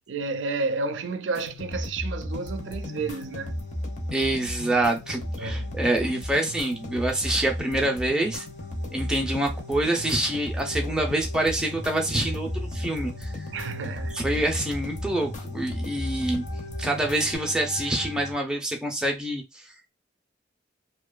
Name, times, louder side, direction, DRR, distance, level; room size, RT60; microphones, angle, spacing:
voice 1, 0.1-3.7 5.4-5.8 13.5-14.3, right 3 dB, 90° right, 0.4 m, -31 dB
sound 1, 1.3-17.4, left 1 dB, 40° left, 0.6 m, -35 dB
sound 2, 2.3-18.3, left 2 dB, 70° left, 0.9 m, -42 dB
voice 2, 4.1-8.4 8.9-13.3 14.1-16.4 16.8-19.4, right 1 dB, 5° right, 0.4 m, -26 dB
2.7 x 2.2 x 2.3 m
head